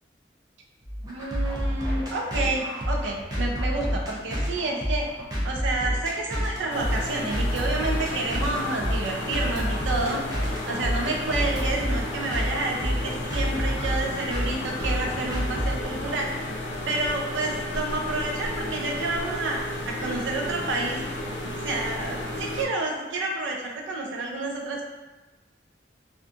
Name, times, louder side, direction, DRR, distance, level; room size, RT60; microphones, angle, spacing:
sound 1, 0.8-16.2, equal, 20° right, 0.4 m, -29 dB
voice 1, 1.1-5.1 5.4-16.3 16.9-21.0 21.6-24.8, right 2 dB, 85° right, 0 dB, 0.5 m, -29 dB
sound 2, 6.7-22.7, left 1 dB, 75° left, 0.4 m, -33 dB
2.5 x 2.4 x 2.4 m, 1.1 s
head